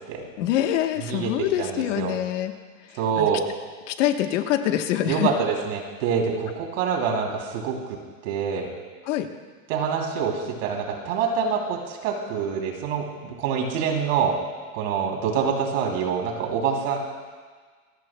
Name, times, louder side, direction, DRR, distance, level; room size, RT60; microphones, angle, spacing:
voice 1, 0.4-2.5 3.2-3.3 3.9-5.3 9.1-9.3, left 12 dB, 65° left, 6 dB, 1.2 m, -24 dB
voice 2, 1.0-1.3 1.6-2.2 2.9-3.4 5.1-8.0 8.2-8.7 9.7-14.4 14.7-17.0, right 6 dB, 75° right, 1 dB, 3.1 m, -26 dB
27.5 x 14.5 x 2.2 m, 1.5 s
supercardioid pair, 175°, 39 cm